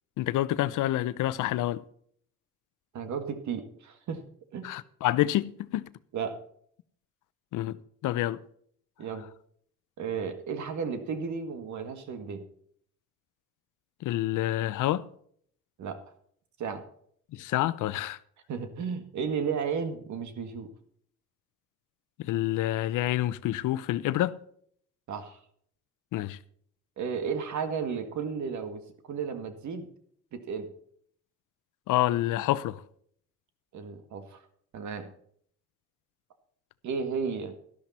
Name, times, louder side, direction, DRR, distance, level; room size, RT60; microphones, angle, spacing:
voice 1, 0.2-1.8 4.6-5.9 7.5-7.8 8.0-8.4 14.0-15.1 17.3-18.2 22.2-24.4 26.1-26.4 31.9-32.8, left 14 dB, 85° left, 0.7 m, -28 dB
voice 2, 2.9-4.2 4.5-4.7 6.1-6.4 9.0-9.3 10.0-12.4 15.8-16.0 16.6-16.8 18.5-20.7 25.1-25.4 27.0-29.9 30.3-30.7 33.7-34.4 34.7-35.1 36.8-37.6, right 6 dB, 70° right, 1.9 m, -33 dB
12.5 x 12.0 x 4.3 m
cardioid pair, 90°, 30 cm